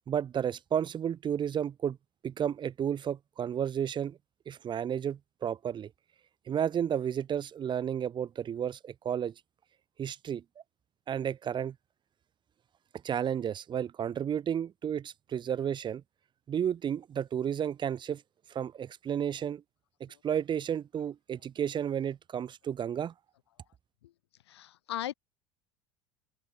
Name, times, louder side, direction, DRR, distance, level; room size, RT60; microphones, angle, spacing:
voice 1, 0.1-2.0 2.2-4.2 4.5-5.9 6.5-9.3 10.0-10.4 11.1-11.7 13.0-16.0 16.5-18.2 18.5-19.6 20.0-23.1, right 9 dB, 35° right, 1.3 m, -32 dB
voice 2, 24.5-25.1, left 13 dB, 80° left, 0.4 m, -36 dB
open air
hypercardioid pair, 75°, 14 cm